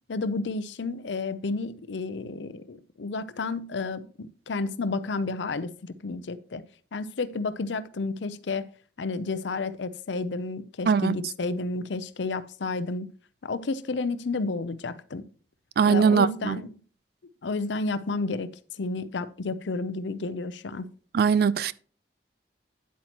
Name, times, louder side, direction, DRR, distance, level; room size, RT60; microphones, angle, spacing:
voice 1, 0.1-6.6 6.9-8.7 9.0-13.1 13.4-15.2 15.9-16.7 17.4-18.5 18.8-20.9, left 3 dB, 85° left, 0.6 m, -31 dB
voice 2, 15.8-16.6 21.1-21.7, right 6 dB, 60° right, 0.4 m, -21 dB
9.4 x 8.5 x 3.0 m
head